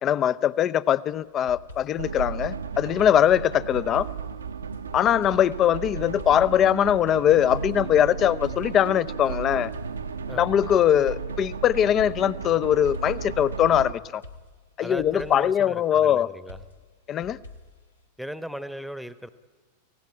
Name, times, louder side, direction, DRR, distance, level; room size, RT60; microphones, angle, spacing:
voice 1, 0.0-4.1 4.9-9.7 10.3-14.2 14.8-16.3 17.1-17.4, left 10 dB, 30° left, 18 dB, 0.6 m, -21 dB
sound 1, 1.1-2.2 3.0-4.8 5.2-6.7 7.5-9.3 9.7-11.2 12.0-13.8 14.2-15.6 16.5-18.0, left 2 dB, 80° left, 2.0 m, -47 dB
sound 2, 2.0-13.9, right 6 dB, 75° right, 1.0 m, -34 dB
voice 2, 14.8-16.6 18.2-19.3, equal, ahead, 14 dB, 1.1 m, -37 dB
25.5 x 17.5 x 9.6 m, 1.4 s
figure-of-eight pair, 90°, 0 cm